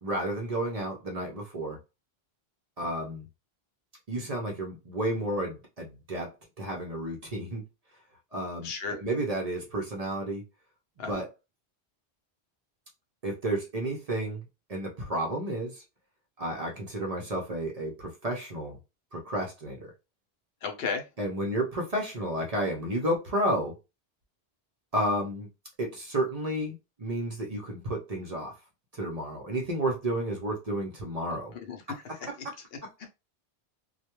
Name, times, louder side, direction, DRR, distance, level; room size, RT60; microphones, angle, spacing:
voice 1, 0.0-1.8 2.8-3.3 4.1-7.6 8.3-10.4 11.0-11.3 13.2-15.8 16.4-18.8 19.1-19.9 21.2-23.8 24.9-25.5 25.8-28.6 28.9-31.5 32.3-32.5 32.8-33.1, right 1 dB, 45° right, 0.6 m, -32 dB
voice 2, 8.6-9.0 11.0-11.2 20.6-21.0 31.5-32.0 33.0-33.1, left 5 dB, 70° left, 0.8 m, -34 dB
2.2 x 2.1 x 2.9 m
omnidirectional pair, 1.1 m